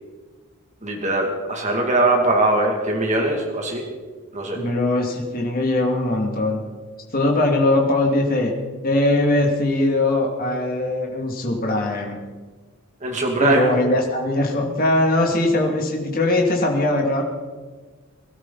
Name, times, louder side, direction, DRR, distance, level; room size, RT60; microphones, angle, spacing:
voice 1, 0.8-3.8 4.3-4.6 13.0-13.7, right 2 dB, 35° right, 1 dB, 2.3 m, -21 dB
voice 2, 4.5-6.6 7.1-8.5 8.8-12.2 13.4-17.2, left 2 dB, 40° left, 0 dB, 2.5 m, -21 dB
23.0 x 12.5 x 4.1 m, 1.4 s
head